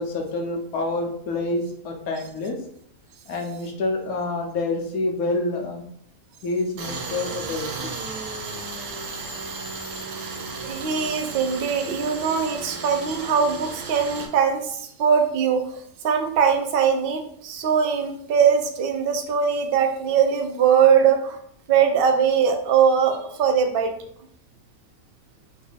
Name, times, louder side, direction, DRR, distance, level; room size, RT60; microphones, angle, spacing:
voice 1, 0.0-2.6 3.3-5.8 6.4-8.0, left 2 dB, 80° left, 2 dB, 1.2 m, -27 dB
Tools, 6.8-14.3, right 4 dB, 80° right, 1.2 m, -34 dB
voice 2, 10.4-15.8 16.0-21.4 21.7-23.9, right 7 dB, 60° right, 5 dB, 0.6 m, -21 dB
3.9 x 2.6 x 3.9 m, 0.68 s
omnidirectional pair, 1.5 m